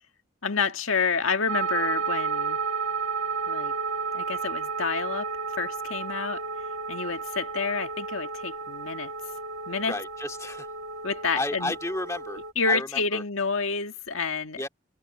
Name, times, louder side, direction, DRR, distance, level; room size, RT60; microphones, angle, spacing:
voice 1, 0.4-2.6 3.5-3.7 4.1-5.3 5.6-6.4 6.9-9.1 9.7-9.9 11.0-11.7 12.5-14.6, left 5 dB, 80° left, 1.8 m, -28 dB
sound 1, 1.5-12.5, right 5 dB, 85° right, 1.7 m, -32 dB
voice 2, 9.9-10.7 11.3-12.4 12.7-13.2 14.6-14.7, left 2 dB, 15° left, 2.4 m, -32 dB
head